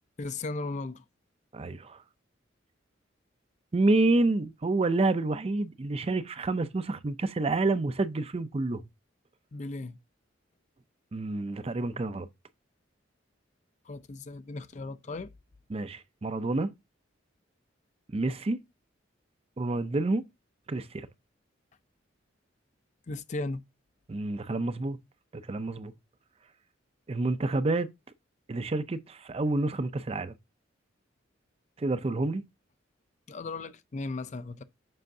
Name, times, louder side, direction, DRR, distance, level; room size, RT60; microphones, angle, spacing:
voice 1, 0.2-1.0 9.5-10.0 13.9-15.3 23.1-23.6 33.3-34.6, left 2 dB, 40° left, 0.5 m, -36 dB
voice 2, 1.5-2.0 3.7-8.8 11.1-12.3 15.7-16.7 18.1-18.6 19.6-20.2 20.7-21.1 24.1-25.0 25.3-25.9 27.1-27.9 28.5-30.3 31.8-32.4, right 2 dB, 30° right, 0.4 m, -28 dB
7.6 x 5.6 x 2.6 m
head